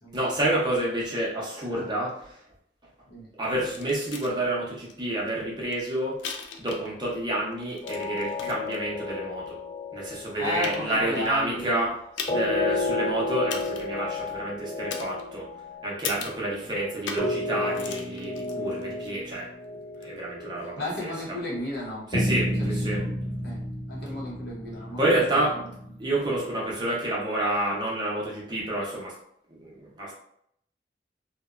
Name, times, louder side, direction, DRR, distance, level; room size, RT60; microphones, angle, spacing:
voice 1, 0.1-2.4 3.4-6.2 6.6-9.6 9.9-11.9 12.3-15.5 15.8-19.5 20.0-21.1 22.1-23.0 25.0-25.5 26.0-29.1 29.5-30.1, right 1 dB, 25° right, -5 dB, 0.7 m, -29 dB
sound 1, 3.7-4.4 4.9-5.0 5.3-7.1 7.5-8.8 9.5-9.6 10.2-10.3 10.6-11.3 12.2-12.6 12.8-12.9 13.5-14.0 14.9-15.6 16.0-16.5 17.1-17.4 17.6-19.1 19.9-20.0, left 5 dB, 80° left, 0.4 m, -38 dB
sound 2, 7.8-11.5 12.3-21.2 22.1-26.8, left 2 dB, 35° left, 1.1 m, -32 dB
voice 2, 10.4-11.9 12.2-12.5 12.8-12.9 16.2-16.3 18.8-19.0 20.8-22.1 22.6-23.2 23.4-23.6 23.9-25.1 25.3-25.7, left 1 dB, 60° left, -5 dB, 0.8 m, -35 dB
2.8 x 2.1 x 2.4 m, 0.71 s
head